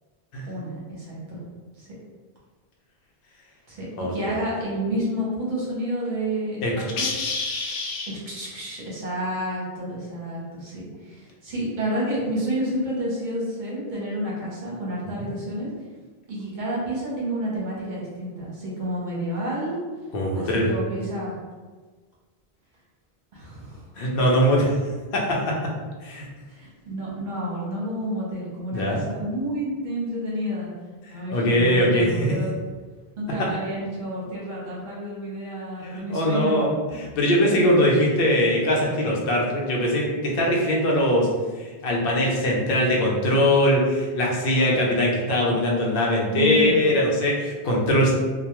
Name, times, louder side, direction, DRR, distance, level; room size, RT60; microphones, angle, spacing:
voice 1, 0.4-1.4 1.8-1.9 3.7-7.1 8.1-15.7 16.3-19.8 20.3-21.4 23.3-23.8 26.5-30.7 31.1-32.5 33.2-36.6 46.3-46.8, right 1 dB, 55° right, -6 dB, 0.8 m, -30 dB
voice 2, 6.6-8.1 20.1-20.7 24.0-24.8 25.1-25.5 26.0-26.3 28.7-29.0 31.3-32.3 35.8-41.3 41.6-48.1, left 1 dB, 65° left, -2 dB, 0.7 m, -22 dB
2.2 x 2.2 x 2.9 m, 1.4 s
omnidirectional pair, 1.0 m